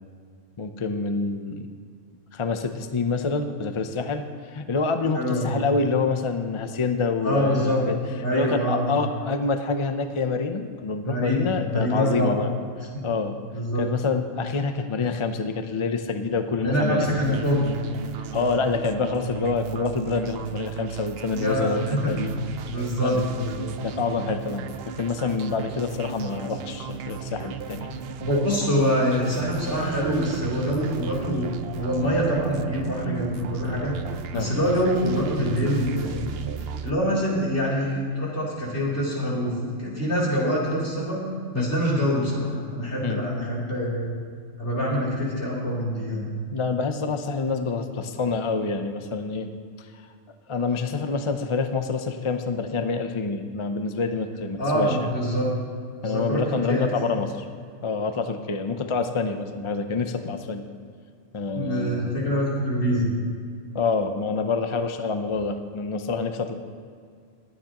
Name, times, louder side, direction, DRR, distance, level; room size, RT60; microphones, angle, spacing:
voice 1, 0.6-1.7 2.3-8.0 8.3-12.5 13.0-13.3 13.8-17.4 18.3-22.3 23.0-23.2 23.8-28.0 34.3-34.5 41.6-41.7 43.0-43.2 46.5-49.5 50.5-55.1 56.0-57.4 57.8-60.7 61.3-62.1 63.7-66.5, left 4 dB, 35° left, 7 dB, 0.5 m, -27 dB
voice 2, 5.1-5.5 7.2-7.8 8.2-9.0 11.0-12.3 13.5-13.9 16.6-17.6 21.3-22.1 22.7-23.7 28.2-33.9 34.3-36.2 36.8-41.3 41.5-44.1 44.6-46.2 54.6-55.5 56.0-56.9 61.5-63.1, equal, 60° left, -6 dB, 3.6 m, -25 dB
sound 1, 17.0-36.9, right 8 dB, 60° right, 0.7 m, -35 dB
21.0 x 9.4 x 2.9 m, 2.2 s
omnidirectional pair, 1.3 m